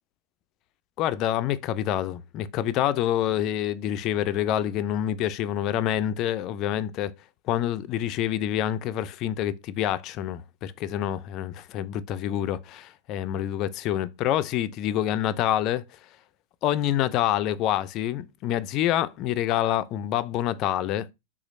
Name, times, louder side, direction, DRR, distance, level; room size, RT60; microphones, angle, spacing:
voice 1, 1.0-7.1 7.5-15.8 16.6-21.1, left 11 dB, 40° left, 0.3 m, -27 dB
3.0 x 2.3 x 4.1 m
hypercardioid pair, 115°, 0 cm